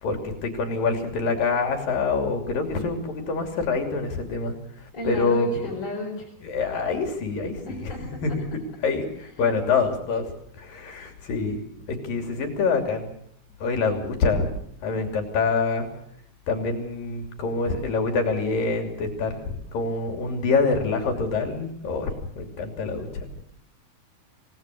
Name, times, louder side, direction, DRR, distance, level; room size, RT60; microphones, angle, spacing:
voice 1, 0.0-4.5 5.0-5.7 6.4-8.5 8.8-10.3 10.6-11.6 11.9-13.1 13.6-14.5 14.8-15.9 16.5-23.3, left 4 dB, 75° left, 4 dB, 4.6 m, -26 dB
voice 2, 4.9-6.3 7.6-8.0 9.4-9.5, left 1 dB, 30° left, 0 dB, 5.3 m, -32 dB
27.5 x 18.5 x 6.5 m, 0.67 s
omnidirectional pair, 4.0 m